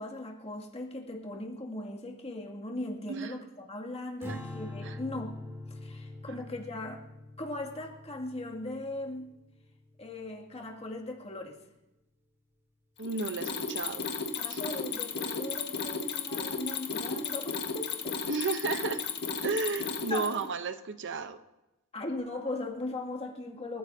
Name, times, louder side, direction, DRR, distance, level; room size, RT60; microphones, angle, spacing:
voice 1, 0.0-5.4 5.7-7.0 7.4-9.3 10.0-11.6 14.4-17.9 20.1-20.5 21.9-23.8, left 2 dB, 30° left, -1 dB, 2.3 m, -38 dB
voice 2, 3.1-3.4 4.3-4.4 4.8-5.0 6.3-6.4 13.0-14.1 14.5-14.6 18.3-19.0 19.4-21.4, right 4 dB, 55° right, 10 dB, 0.8 m, -33 dB
Strum, 4.2-10.6, left 2 dB, 10° right, 2.5 m, -44 dB
Mechanisms, 13.0-20.5, left 5 dB, 50° left, 1.6 m, -34 dB
28.0 x 15.0 x 2.8 m, 0.98 s
head